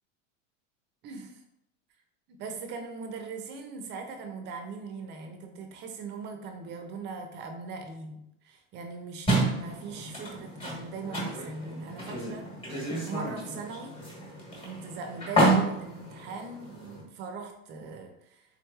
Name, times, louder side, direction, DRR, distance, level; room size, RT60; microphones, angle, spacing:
voice 1, 1.0-1.3 2.3-12.5 13.0-13.9 14.6-18.4, right 4 dB, 30° right, 5 dB, 0.4 m, -40 dB
sound 1, 9.3-17.0, right 1 dB, 15° left, 1.1 m, -30 dB
3.7 x 3.0 x 2.3 m, 0.80 s
supercardioid pair, 135°, 38 cm